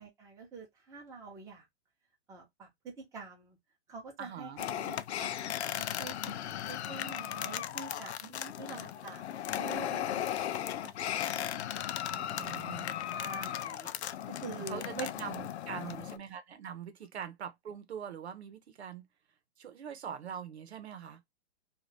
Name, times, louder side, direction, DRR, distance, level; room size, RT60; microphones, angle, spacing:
voice 1, 0.0-1.7 2.3-3.6 3.9-5.3 5.8-8.2 8.6-9.2 9.5-10.5 10.8-11.6 12.1-13.9 14.3-15.1 15.7-16.2, right 4 dB, 10° right, 0.8 m, -46 dB
voice 2, 4.2-4.6 8.2-8.5 12.3-12.9 14.7-19.0 19.6-21.2, right 8 dB, 80° right, 0.9 m, -43 dB
sound 1, 4.6-16.2, left 11 dB, 80° left, 0.5 m, -36 dB
2.6 x 2.5 x 3.3 m
hypercardioid pair, 155°, 32 cm